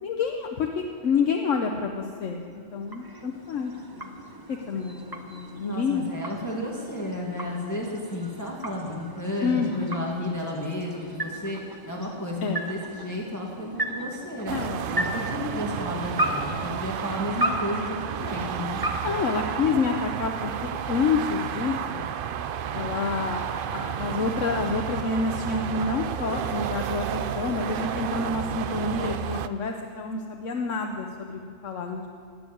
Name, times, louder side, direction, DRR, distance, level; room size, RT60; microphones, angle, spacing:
voice 1, 0.0-4.1 4.5-6.1 9.4-10.0 12.4-12.7 14.5-15.1 19.0-20.5 20.9-22.1 22.7-32.1, left 5 dB, 75° left, 3 dB, 1.2 m, -28 dB
sound 1, 2.3-20.1, right 1 dB, 20° right, 0.9 m, -36 dB
voice 2, 5.6-11.6 11.9-14.5 14.9-18.8, left 1 dB, 15° left, -3 dB, 1.9 m, -32 dB
sound 2, 14.5-29.5, right 9 dB, 60° right, 0.6 m, -31 dB
19.0 x 7.0 x 9.1 m, 2.2 s
omnidirectional pair, 1.3 m